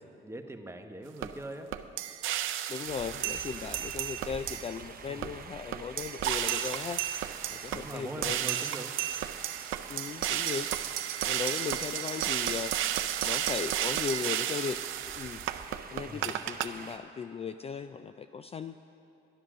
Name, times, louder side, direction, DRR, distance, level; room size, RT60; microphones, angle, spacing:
voice 1, 0.2-1.7 5.1-5.3 7.7-8.9 16.0-16.3, right 2 dB, 15° right, 5 dB, 1.0 m, -42 dB
sound 1, 1.2-1.3 1.7-4.8 5.2-5.3 5.7-16.7, right 11 dB, 90° right, 0.5 m, -33 dB
voice 2, 2.7-7.0 7.5-8.5 9.9-10.7 11.3-12.8 13.2-14.8 15.1-15.4 15.9-18.8, left 6 dB, 30° left, 9 dB, 0.4 m, -37 dB
sound 2, 2.8-17.0, right 6 dB, 50° right, 0.8 m, -48 dB
11.5 x 10.5 x 6.2 m, 2.7 s
cardioid pair, 90°, 20 cm